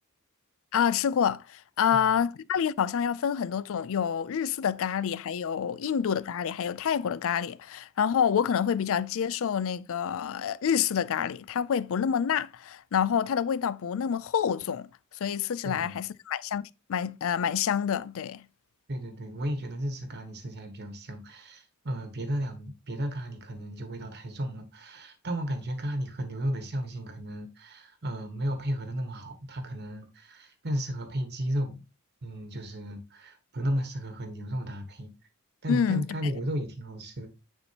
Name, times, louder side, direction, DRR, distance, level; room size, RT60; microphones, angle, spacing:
voice 1, 0.7-14.9 15.2-18.4 35.7-36.1, left 8 dB, 65° left, 0.4 m, -27 dB
voice 2, 15.6-16.0 18.9-31.8 32.2-35.1 35.6-37.3, equal, 50° right, 1.2 m, -34 dB
9.4 x 4.4 x 2.9 m
head